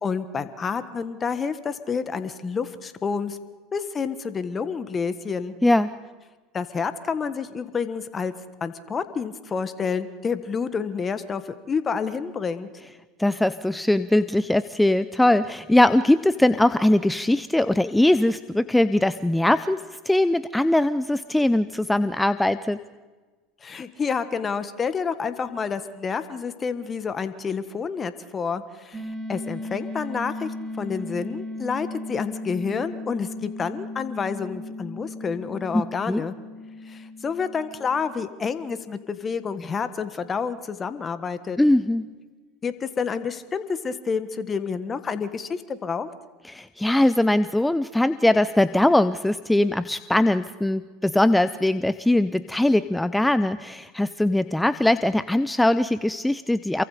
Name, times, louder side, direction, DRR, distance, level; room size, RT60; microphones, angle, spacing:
voice 1, 0.0-3.4 3.7-5.5 6.5-8.3 8.6-12.7 23.6-29.0 29.3-36.3 36.8-41.6 42.6-46.1, left 5 dB, 30° left, 12 dB, 1.5 m, -29 dB
voice 2, 13.2-22.8 35.7-36.2 41.6-42.1 46.4-56.8, left 1 dB, 5° left, 14 dB, 0.7 m, -21 dB
sound 1, 28.9-39.6, left 2 dB, 20° right, 4.0 m, -37 dB
28.0 x 23.5 x 5.0 m, 1.3 s
hypercardioid pair, 85°, 0 cm